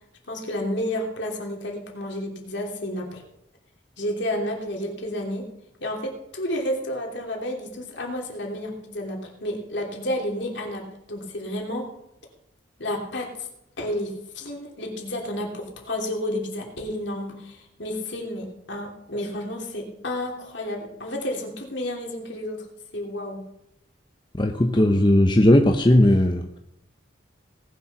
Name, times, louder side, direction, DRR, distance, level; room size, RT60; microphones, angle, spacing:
voice 1, 0.3-3.2 4.0-5.5 5.8-11.9 12.8-13.5 13.8-22.7 22.9-23.4, left 1 dB, 65° left, 0 dB, 3.0 m, -31 dB
voice 2, 24.4-26.6, left 1 dB, 25° left, 4 dB, 0.7 m, -17 dB
18.5 x 7.0 x 5.9 m, 0.81 s
head